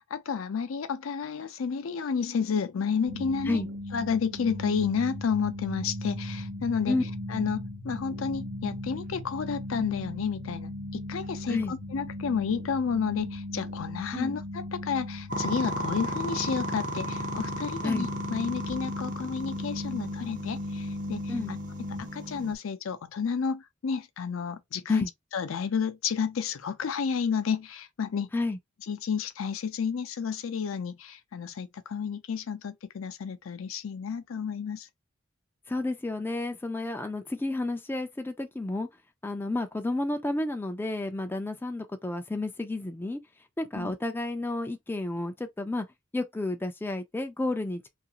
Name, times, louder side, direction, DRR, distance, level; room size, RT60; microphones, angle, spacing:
voice 1, 0.0-3.6 3.9-7.0 7.3-21.6 22.0-25.1 25.3-28.3 28.9-34.9 43.7-43.9, left 6 dB, 75° left, 0.4 m, -31 dB
sound 1, 3.1-22.0, left 1 dB, 85° right, 0.8 m, -38 dB
sound 2, 15.3-22.5, right 1 dB, 40° right, 0.5 m, -35 dB
voice 2, 35.7-38.9 39.2-43.2 43.6-45.9 46.1-47.9, left 2 dB, 10° left, 0.3 m, -31 dB
2.7 x 2.5 x 2.8 m
head